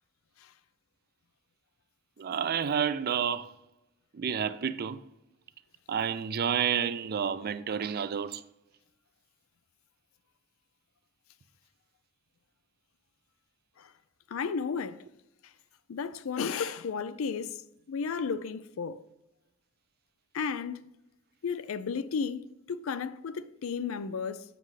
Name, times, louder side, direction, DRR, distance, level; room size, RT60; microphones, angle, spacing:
voice 1, 2.2-3.5 4.1-5.0 5.9-8.4 18.3-18.4, right 7 dB, 45° right, 0.4 m, -30 dB
voice 2, 14.3-15.0 15.9-17.5 17.9-19.0 20.3-20.8 21.4-24.4, left 5 dB, 70° left, 0.4 m, -33 dB
7.6 x 6.3 x 3.2 m
head